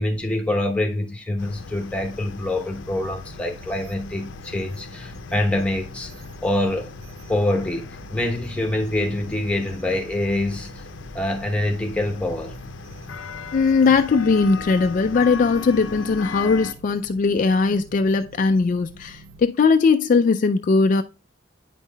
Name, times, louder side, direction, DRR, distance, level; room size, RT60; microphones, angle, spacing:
voice 1, 0.0-6.1 6.4-6.9 7.3-10.7 11.1-12.5, left 1 dB, 5° left, 0.9 m, -25 dB
sound 1, 1.4-16.7, left 4 dB, 85° left, 0.6 m, -38 dB
sound 2, 2.7-19.4, right 3 dB, 55° right, 0.8 m, -47 dB
voice 2, 13.5-21.0, left 4 dB, 45° left, 0.3 m, -19 dB
9.1 x 5.5 x 2.2 m
head